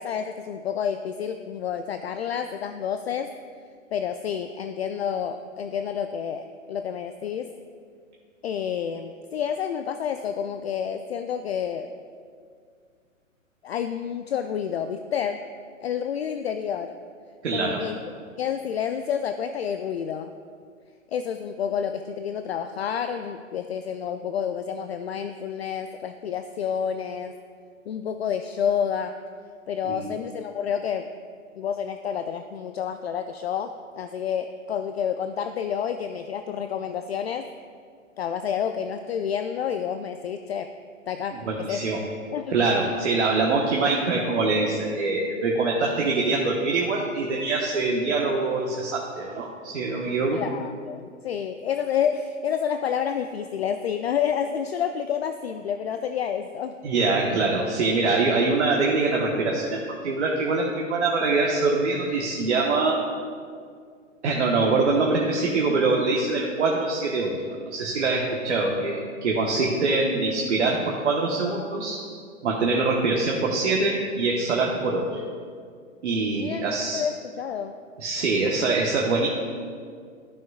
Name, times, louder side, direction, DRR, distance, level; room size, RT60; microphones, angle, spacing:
voice 1, 0.0-3.3 3.9-7.5 8.4-11.9 13.6-15.4 15.8-17.0 17.5-18.0 18.4-20.3 21.1-27.3 27.9-29.2 29.7-31.1 31.6-37.5 38.2-40.7 41.1-41.8 42.3-42.6 43.6-43.7 50.3-56.8 76.3-77.7, left 8 dB, 55° left, 8 dB, 0.4 m, -29 dB
voice 2, 17.4-17.8 29.8-30.1 41.4-42.0 42.5-50.4 56.8-63.0 64.2-72.0 72.4-75.2 76.0-77.0 78.0-79.3, right 3 dB, 60° right, -1 dB, 1.2 m, -24 dB
14.0 x 6.1 x 2.3 m, 2.1 s
figure-of-eight pair, 120°, 39 cm